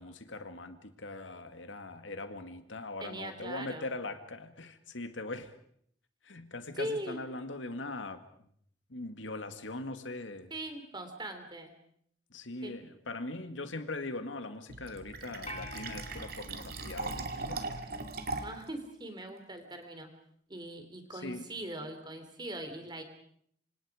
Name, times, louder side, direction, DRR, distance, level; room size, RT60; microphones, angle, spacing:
voice 1, 0.0-5.5 6.2-8.2 8.9-10.5 12.3-17.7 21.1-21.5, left 2 dB, 80° left, 8 dB, 2.1 m, -41 dB
voice 2, 3.0-3.9 6.8-7.2 10.5-11.7 12.6-12.7 18.4-20.1 20.5-23.0, right 1 dB, 25° right, 6 dB, 3.5 m, -40 dB
Fill (with liquid), 14.7-18.7, right 3 dB, 55° right, 2.4 m, -39 dB
sound 1, 15.5-17.9, left 2 dB, 35° left, 1.9 m, -49 dB
27.0 x 26.0 x 5.0 m, 0.66 s
head